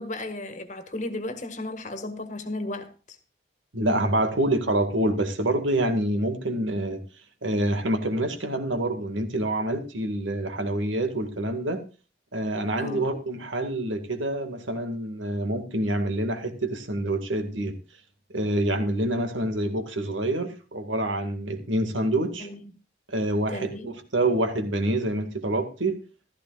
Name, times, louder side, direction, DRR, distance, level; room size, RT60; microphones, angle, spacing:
voice 1, 0.0-3.2 12.8-13.1 22.4-22.6 23.5-23.9, left 2 dB, 40° left, 1.6 m, -34 dB
voice 2, 3.7-7.0 7.4-11.8 12.3-17.7 18.3-22.5 23.1-25.9, right 1 dB, 80° right, 2.0 m, -26 dB
15.0 x 13.5 x 2.4 m
head